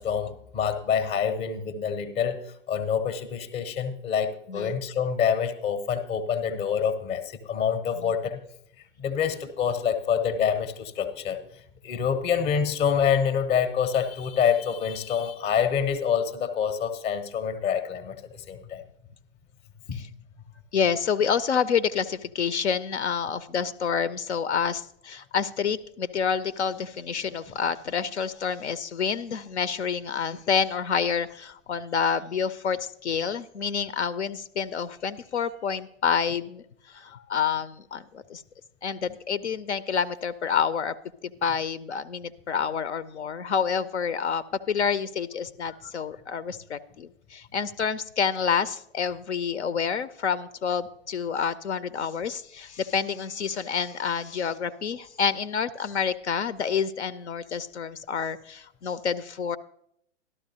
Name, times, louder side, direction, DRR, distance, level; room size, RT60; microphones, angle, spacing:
voice 1, 0.0-2.4 2.7-8.4 9.0-11.4 11.8-18.8 19.9-20.0 37.1-37.2, left 7 dB, 15° left, 10 dB, 0.7 m, -26 dB
voice 2, 20.7-38.4 38.8-40.9 41.2-59.6, left 7 dB, 65° left, 16 dB, 0.6 m, -28 dB
13.0 x 12.0 x 2.8 m, 0.73 s
figure-of-eight pair, 110°, 37 cm